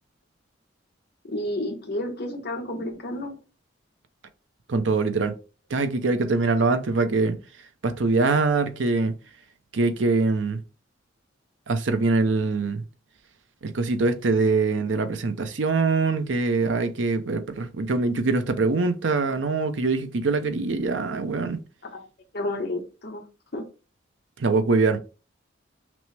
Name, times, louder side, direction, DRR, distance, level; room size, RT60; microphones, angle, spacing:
voice 1, 1.3-3.4 21.9-22.1 22.3-23.2 23.5-23.6, left 1 dB, 55° left, 1.0 m, -31 dB
voice 2, 4.7-5.4 5.7-7.4 7.8-9.1 9.7-10.6 11.7-12.8 13.6-21.6 24.4-25.0, right 3 dB, 75° right, 0.6 m, -23 dB
6.0 x 2.1 x 3.2 m
head